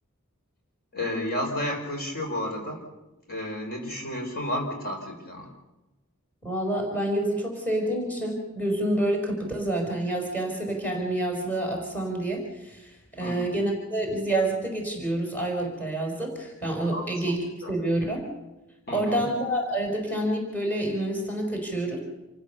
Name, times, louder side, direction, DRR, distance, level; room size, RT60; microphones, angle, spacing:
voice 1, 0.9-2.8 3.3-5.5 13.2-13.5 16.9-17.1 17.6-17.7 18.9-19.2, left 1 dB, 45° left, 2 dB, 5.1 m, -31 dB
voice 2, 6.4-18.2 18.9-22.0, right 1 dB, 10° left, 1 dB, 4.7 m, -28 dB
28.0 x 15.5 x 6.9 m, 1.0 s
head